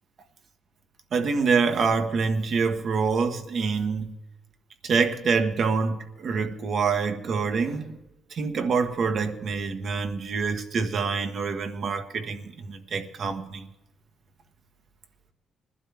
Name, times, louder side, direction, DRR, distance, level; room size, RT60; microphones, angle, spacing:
voice 1, 1.1-4.2 4.8-8.0 8.3-13.7, right 5 dB, 60° right, 1.4 m, -26 dB
20.0 x 11.5 x 3.5 m
cardioid pair, 90°, 0 cm